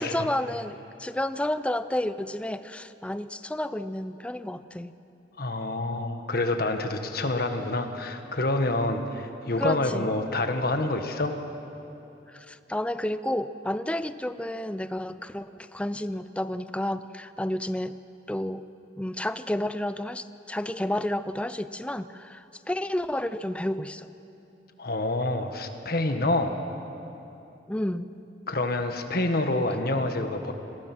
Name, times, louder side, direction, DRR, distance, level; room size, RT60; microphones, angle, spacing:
voice 1, 0.0-4.9 9.6-10.1 12.3-18.0 18.3-18.7 19.0-24.1 27.7-28.1, left 1 dB, 5° left, 13 dB, 0.5 m, -31 dB
voice 2, 5.4-11.3 24.8-26.5 28.5-30.5, left 2 dB, 55° left, 6 dB, 1.6 m, -27 dB
26.5 x 20.5 x 6.2 m, 2.9 s
head